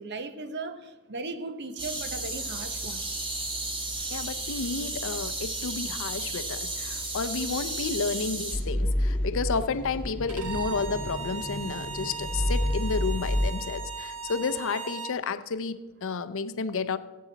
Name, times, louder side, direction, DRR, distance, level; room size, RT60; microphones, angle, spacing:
voice 1, 0.0-3.0, right 3 dB, 50° right, 10 dB, 0.9 m, -37 dB
sound 1, 1.8-8.6, right 2 dB, 25° right, 1.5 m, -33 dB
voice 2, 4.1-17.0, left 4 dB, 60° left, 12 dB, 0.6 m, -31 dB
sound 2, 8.5-13.5, left 1 dB, 10° left, 1.5 m, -29 dB
Bowed string instrument, 10.3-15.2, right 6 dB, 85° right, 1.3 m, -38 dB
16.5 x 8.4 x 4.0 m, 1.2 s
head